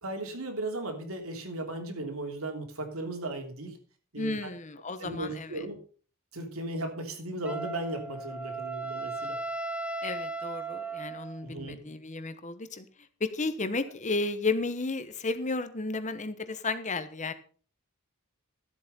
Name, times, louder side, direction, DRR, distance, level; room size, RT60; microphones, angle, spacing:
voice 1, 0.0-3.8 4.1-4.5 5.0-5.8 6.3-9.4 11.4-11.8 13.8-13.9, right 1 dB, 80° right, 4 dB, 3.2 m, -36 dB
voice 2, 4.2-5.7 10.0-12.8 13.2-17.3, left 3 dB, 35° left, 11 dB, 1.1 m, -33 dB
Wind instrument woodwind instrument, 7.4-11.4, right 3 dB, 5° right, 0.9 m, -36 dB
13.5 x 8.1 x 5.5 m, 0.42 s
head